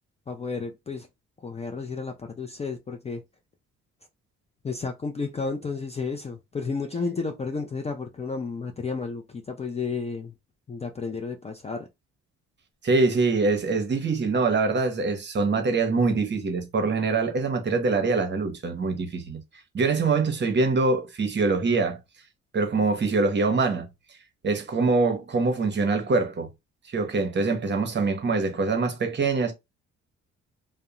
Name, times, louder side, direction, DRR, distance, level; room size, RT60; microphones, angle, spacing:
voice 1, 0.3-1.1 1.4-3.2 4.6-10.3 10.7-11.9, left 4 dB, 20° left, 0.4 m, -32 dB
voice 2, 12.8-19.4 19.7-22.0 22.5-23.9 24.4-26.5 26.9-29.5, right 3 dB, 35° right, 0.8 m, -24 dB
2.4 x 2.0 x 2.9 m
cardioid pair, 90°, 30 cm